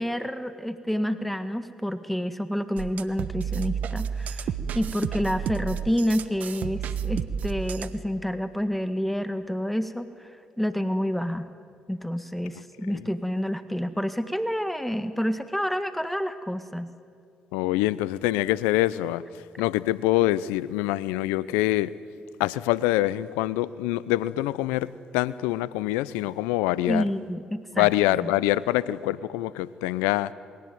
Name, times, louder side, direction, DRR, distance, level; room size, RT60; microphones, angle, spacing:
voice 1, 0.0-10.3 10.6-11.5 11.9-16.9 26.9-28.3, equal, 5° left, 10 dB, 1.8 m, -29 dB
sound 1, 2.8-8.0, right 7 dB, 65° right, 1.3 m, -31 dB
voice 2, 17.5-19.2 19.6-21.9 22.4-27.0 27.7-30.3, left 16 dB, 85° left, 19 dB, 0.7 m, -25 dB
27.5 x 22.5 x 9.3 m, 2.4 s
hypercardioid pair, 50°, 3 cm